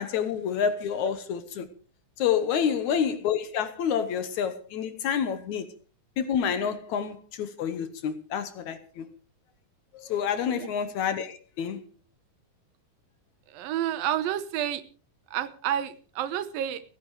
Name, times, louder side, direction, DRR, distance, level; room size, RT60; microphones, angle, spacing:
voice 1, 0.0-1.7 2.2-5.7 6.2-9.1 9.9-11.8, left 8 dB, 65° left, 2.1 m, -28 dB
voice 2, 13.5-14.8 15.3-16.8, right 11 dB, 85° right, 2.8 m, -30 dB
30.0 x 10.5 x 3.2 m
omnidirectional pair, 4.0 m